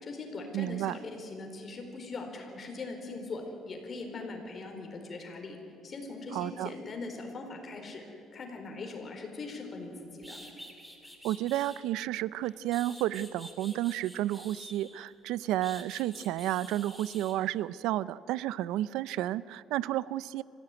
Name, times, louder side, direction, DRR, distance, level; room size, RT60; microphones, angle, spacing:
voice 1, 0.0-5.6 5.8-10.4, left 3 dB, 35° left, 3 dB, 4.4 m, -41 dB
voice 2, 0.5-0.9 6.3-6.7 11.2-20.4, right 14 dB, 85° right, 19 dB, 0.5 m, -31 dB
sound 1, 9.8-9.9 10.2-11.8 12.4-15.1 15.6-17.4, equal, ahead, 2.9 m, -49 dB
25.0 x 16.0 x 9.6 m, 2.7 s
cardioid pair, 120°, 0 cm